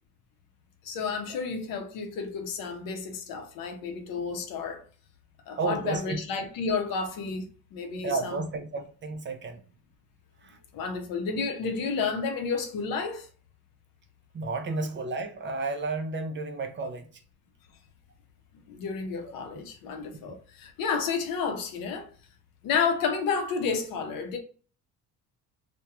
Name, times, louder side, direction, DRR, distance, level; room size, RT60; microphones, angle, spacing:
voice 1, 0.8-4.8 5.5-8.5 10.7-13.3 18.7-22.1 22.6-24.4, left 5 dB, 70° left, 0.7 m, -31 dB
voice 2, 5.6-6.2 8.0-9.6 10.4-10.6 14.3-17.0 20.2-20.4, right 3 dB, 35° right, 0.5 m, -32 dB
2.8 x 2.2 x 2.3 m
supercardioid pair, 75°, 35 cm